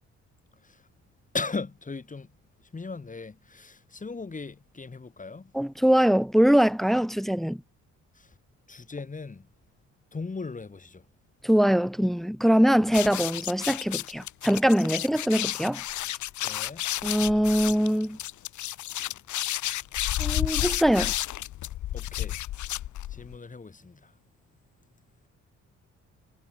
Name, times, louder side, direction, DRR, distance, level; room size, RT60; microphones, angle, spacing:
voice 1, 1.3-2.3 2.7-5.5 8.2-8.3 8.7-9.5 10.1-11.0 16.4-16.8 21.9-22.4 23.1-24.1, left 4 dB, 25° left, 3.4 m, -37 dB
voice 2, 5.5-7.6 11.4-15.8 17.0-18.2 20.2-21.1, equal, ahead, 0.6 m, -22 dB
sound 1, 12.9-23.3, left 13 dB, 75° left, 1.5 m, -31 dB
cardioid pair, 90°, 30 cm